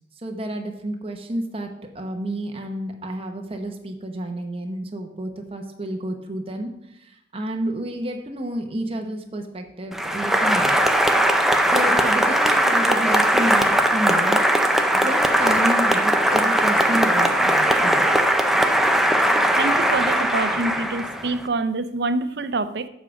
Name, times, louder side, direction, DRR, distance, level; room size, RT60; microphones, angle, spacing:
voice 1, 0.2-1.7 1.9-10.9 11.7-14.4 14.9-18.2, right 1 dB, 30° right, 4 dB, 1.0 m, -30 dB
Applause, 9.9-21.4, right 1 dB, ahead, 0.5 m, -19 dB
voice 2, 19.5-22.9, right 3 dB, 60° right, 11 dB, 0.5 m, -26 dB
7.3 x 5.0 x 7.1 m, 0.82 s
head